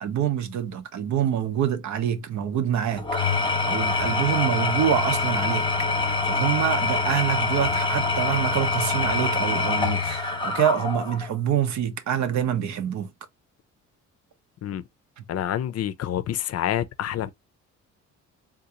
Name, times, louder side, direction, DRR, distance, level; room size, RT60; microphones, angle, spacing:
voice 1, 0.0-5.7 6.2-13.1 15.2-15.3, right 9 dB, 70° right, 0.7 m, -26 dB
Engine / Tools, 3.0-11.3, left 3 dB, 15° left, 0.8 m, -25 dB
voice 2, 15.3-17.3, left 11 dB, 55° left, 0.5 m, -27 dB
3.7 x 2.5 x 2.8 m
cardioid pair, 90°, 30 cm